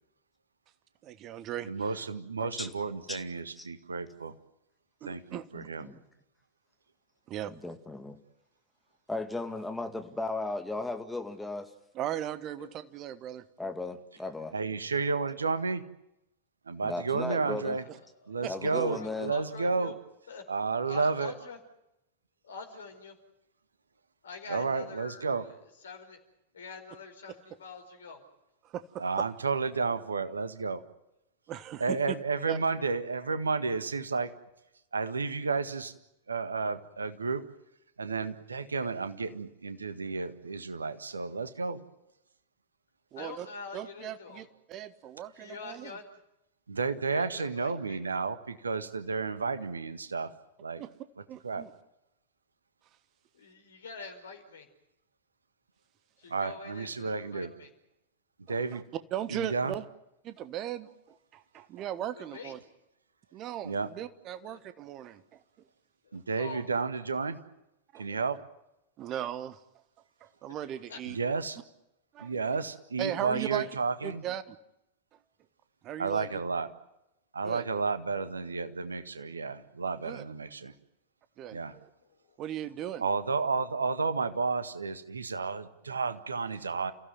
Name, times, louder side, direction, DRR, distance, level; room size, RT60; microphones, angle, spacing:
voice 1, 1.0-2.1 2.4-2.5 5.0-5.5 7.3-7.6 11.9-13.4 18.4-18.5 28.6-29.2 31.5-32.2 32.5-32.6 43.1-43.5 43.7-46.0 50.8-50.9 51.3-51.7 58.5-58.8 59.1-59.8 60.2-62.6 63.3-65.4 67.9-68.3 69.0-69.6 70.2-71.2 72.1-72.6 73.0-73.7 74.0-74.6 75.1-75.2 75.8-76.3 77.4-77.6 80.0-80.2 81.4-81.6 82.4-83.1, right 11 dB, 35° right, 13 dB, 1.4 m, -38 dB
voice 2, 1.7-4.3 5.1-5.2 5.5-5.9 14.5-15.8 16.7-17.8 18.3-19.9 20.5-21.3 24.5-25.5 29.0-30.8 31.8-34.3 34.9-35.9 36.3-37.4 38.0-41.8 46.7-50.3 50.6-50.8 51.4-51.6 56.3-57.5 58.5-58.8 59.3-59.7 63.6-63.9 66.1-67.4 68.0-68.4 71.1-71.6 72.2-74.2 76.0-76.7 77.3-80.7 81.5-81.8 83.0-86.9, right 4 dB, 75° right, 11 dB, 1.7 m, -32 dB
voice 3, 2.5-3.3 3.6-3.7 5.5-6.0 7.5-8.2 9.1-11.7 13.6-14.6 16.8-17.8 18.5-19.3, left 2 dB, 5° left, 6 dB, 2.3 m, -36 dB
voice 4, 12.6-12.9 17.8-17.9 18.2-19.9 20.3-20.4 20.8-21.6 22.4-23.2 24.2-25.5 25.8-26.2 26.5-28.2 43.1-44.5 45.4-46.0 47.1-48.0 53.3-54.7 56.2-57.7 62.2-62.5 64.4-64.6 66.0-66.6 70.9-71.0 81.9-82.4, left 4 dB, 65° left, 6 dB, 4.8 m, -45 dB
29.5 x 16.0 x 9.5 m, 0.86 s
figure-of-eight pair, 90°, 0 cm